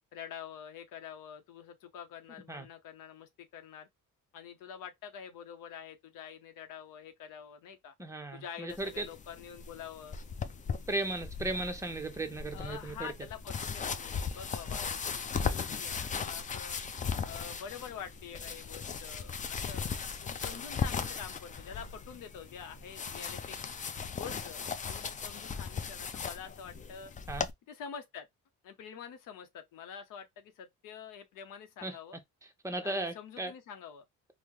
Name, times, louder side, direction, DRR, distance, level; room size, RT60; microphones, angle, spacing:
voice 1, 0.1-3.9 4.3-7.9 8.3-10.2 12.5-16.8 17.3-19.9 20.2-23.6 24.1-27.1 27.7-28.3 28.6-32.2 32.8-34.0, left 8 dB, 80° left, 0.7 m, -46 dB
voice 2, 8.0-9.0 10.9-13.1 27.3-27.5 31.8-32.0 32.6-33.5, right 2 dB, 10° right, 0.6 m, -36 dB
sound 1, 8.7-27.5, left 6 dB, 25° left, 0.3 m, -38 dB
3.6 x 2.0 x 2.9 m
cardioid pair, 110°, 32 cm